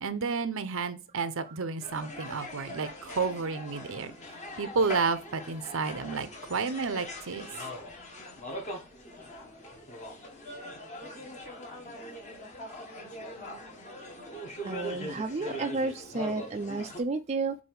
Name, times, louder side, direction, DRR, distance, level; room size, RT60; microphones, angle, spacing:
voice 1, 0.0-4.1 4.6-7.5, right 4 dB, 65° right, 0.7 m, -31 dB
sound 1, 1.8-17.0, left 1 dB, 35° left, 1.5 m, -41 dB
voice 2, 14.6-17.6, right 3 dB, 30° right, 0.4 m, -32 dB
7.9 x 2.7 x 4.8 m
head